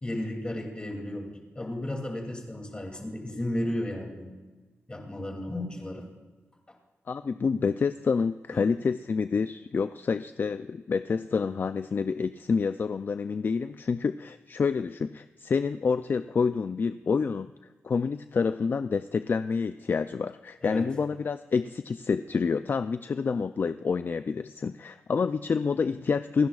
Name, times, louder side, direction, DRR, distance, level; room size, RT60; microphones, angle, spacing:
voice 1, 0.0-4.3 4.9-6.1 20.6-20.8, left 1 dB, 20° left, 1 dB, 2.6 m, -34 dB
voice 2, 7.1-17.5 17.8-26.5, left 5 dB, 45° left, 12 dB, 0.3 m, -28 dB
28.0 x 10.5 x 2.4 m, 1.3 s
wide cardioid pair, 95°, 5 cm